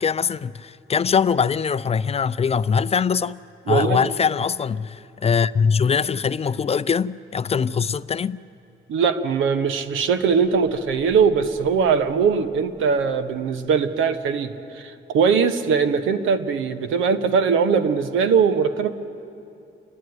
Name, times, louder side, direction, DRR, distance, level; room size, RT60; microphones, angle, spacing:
voice 1, 0.0-3.4 3.7-8.4, left 6 dB, 30° left, 0.4 m, -22 dB
voice 2, 3.7-4.0 8.9-18.9, right 6 dB, 80° right, 1.3 m, -21 dB
sound 1, 10.4-14.1, left 1 dB, 55° right, 5.6 m, -45 dB
29.0 x 12.0 x 9.6 m
cardioid pair, 90°, 20 cm